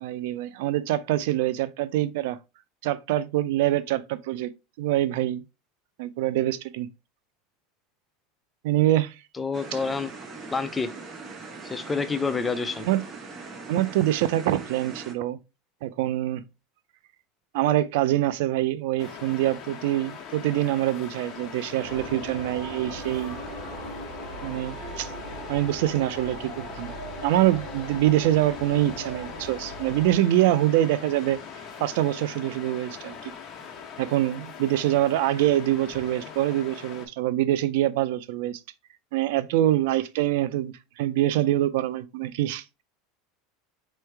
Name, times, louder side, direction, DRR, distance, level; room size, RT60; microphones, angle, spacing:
voice 1, 0.0-2.4 2.8-4.5 4.8-5.4 6.0-6.9 8.6-9.1 12.8-13.0 13.7-15.4 15.8-16.4 17.5-23.4 24.4-25.1 25.5-26.9 27.2-31.4 31.8-33.2 34.0-38.6 39.1-42.8, right 14 dB, 75° right, 0.4 m, -25 dB
voice 2, 9.4-10.1 10.5-10.9 11.6-12.8, left 4 dB, 15° left, 0.5 m, -28 dB
sound 1, 9.5-15.1, right 4 dB, 30° right, 1.0 m, -41 dB
Waves surf, 19.0-37.1, left 7 dB, 35° left, 1.0 m, -42 dB
sound 2, 21.8-30.1, right 2 dB, 45° right, 2.2 m, -39 dB
4.4 x 3.1 x 3.3 m
supercardioid pair, 125°, 0 cm